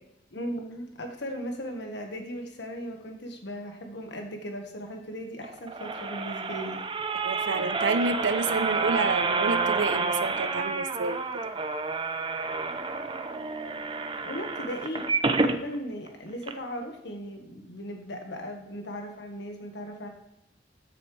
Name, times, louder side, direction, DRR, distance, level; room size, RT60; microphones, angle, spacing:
voice 1, 0.3-6.8 8.0-8.6 14.2-20.1, equal, 70° left, 3 dB, 1.4 m, -37 dB
sound 1, 5.4-15.6 16.1-16.2 16.4-16.5, right 4 dB, 30° right, 0.6 m, -29 dB
voice 2, 7.2-11.2, right 4 dB, 85° right, 12 dB, 0.7 m, -29 dB
13.5 x 7.2 x 3.3 m, 0.85 s
head